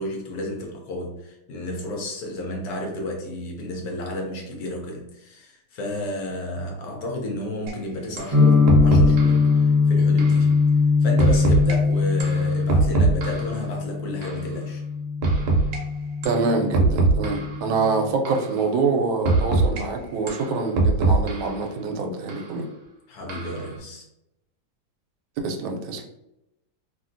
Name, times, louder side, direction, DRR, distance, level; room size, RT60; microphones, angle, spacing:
voice 1, 0.0-10.6 11.0-14.8 23.1-24.0, left 1 dB, 65° left, 0 dB, 1.0 m, -32 dB
sound 1, 7.7-7.8 8.2-8.4 8.7-9.4 10.2-10.4 11.2-11.7 12.2-13.6 14.2-14.4 15.2-15.8 16.2-16.4 16.7-17.6 18.2-18.5 19.2-19.8 20.3-21.6 22.3-22.4 23.3-23.7, right 3 dB, 70° right, 1.1 m, -22 dB
sound 2, 8.3-18.1, left 4 dB, 40° right, 0.5 m, -21 dB
voice 2, 16.2-22.7 25.4-26.0, right 4 dB, 90° right, 3 dB, 1.3 m, -25 dB
2.9 x 2.7 x 2.5 m, 0.87 s
omnidirectional pair, 2.1 m